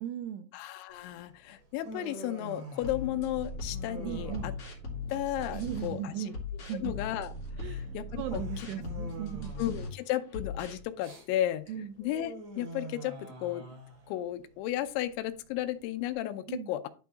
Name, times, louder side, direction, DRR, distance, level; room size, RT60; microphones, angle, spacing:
voice 1, 0.0-0.5 4.0-4.5 5.5-6.4 6.7-6.9 7.6-9.5 11.7-11.9 16.5-16.7, right 10 dB, 80° right, 8 dB, 2.5 m, -37 dB
voice 2, 0.5-4.5 5.1-6.1 6.8-7.3 7.6-8.4 9.6-11.6 12.0-13.7 14.1-16.9, left 13 dB, 85° left, 8 dB, 3.1 m, -34 dB
Human voice, 0.9-16.1, right 2 dB, 35° right, 3.4 m, -47 dB
sound 1, 2.8-5.9 6.3-9.9 10.3-10.8, left 2 dB, 40° left, 2.6 m, -39 dB
11.5 x 4.6 x 4.1 m, 0.36 s
omnidirectional pair, 5.3 m